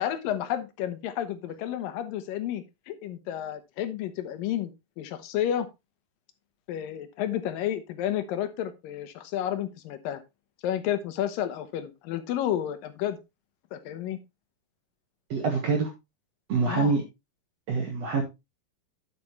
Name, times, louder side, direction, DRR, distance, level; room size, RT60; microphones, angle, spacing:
voice 1, 0.0-5.7 6.7-10.2 10.6-13.2 13.7-14.2 16.6-16.9, left 11 dB, 85° left, 10 dB, 2.8 m, -31 dB
voice 2, 15.3-15.9 16.5-17.0 17.7-18.2, right 4 dB, 55° right, 1 dB, 2.4 m, -25 dB
8.6 x 8.4 x 3.1 m, 0.23 s
omnidirectional pair, 3.9 m